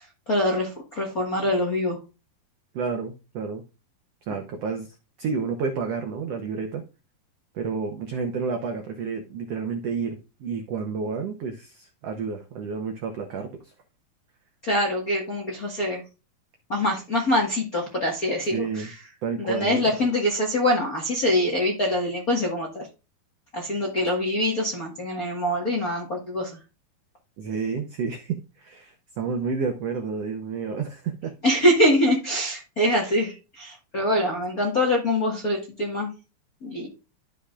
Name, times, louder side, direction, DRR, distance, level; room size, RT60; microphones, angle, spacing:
voice 1, 0.0-2.0 14.6-16.0 16.7-19.0 19.4-22.9 23.5-26.5 31.4-36.1 36.6-36.9, left 1 dB, 50° left, -1 dB, 1.0 m, -24 dB
voice 2, 2.7-3.6 4.3-6.8 7.5-13.7 18.5-18.9 19.2-19.8 27.4-31.3, right 5 dB, 90° right, 4 dB, 1.3 m, -30 dB
13.0 x 5.3 x 2.4 m, 0.30 s
omnidirectional pair, 4.2 m